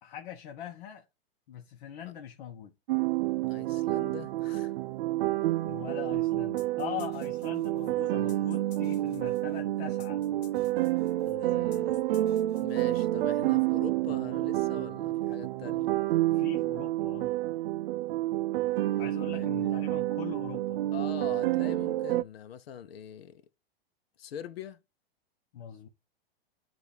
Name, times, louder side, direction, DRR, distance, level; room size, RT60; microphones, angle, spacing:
voice 1, 0.0-1.0 1.5-2.7 5.6-10.2 16.3-17.4 19.0-20.8 25.5-25.9, left 9 dB, 60° left, 1.0 m, -42 dB
sound 1, 2.9-22.2, right 15 dB, 60° right, 0.4 m, -29 dB
voice 2, 3.5-4.7 11.2-12.0 12.6-15.9 19.2-19.5 20.9-23.4 24.2-24.8, left 9 dB, 75° left, 0.8 m, -43 dB
sound 2, 6.6-13.3, left 6 dB, 40° left, 2.2 m, -58 dB
7.9 x 2.6 x 5.3 m
hypercardioid pair, 135°, 30 cm